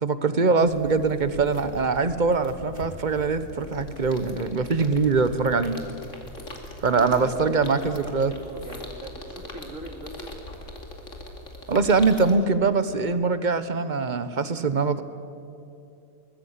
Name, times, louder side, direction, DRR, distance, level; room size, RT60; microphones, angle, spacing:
voice 1, 0.0-5.8 6.8-8.3 11.7-15.0, right 4 dB, 35° right, 12 dB, 1.0 m, -23 dB
sound 1, 0.6-12.3, left 1 dB, 50° left, 2.9 m, -41 dB
voice 2, 6.9-10.3, right 1 dB, 55° right, 4 dB, 3.0 m, -40 dB
23.0 x 20.0 x 8.2 m, 2.7 s
omnidirectional pair, 1.6 m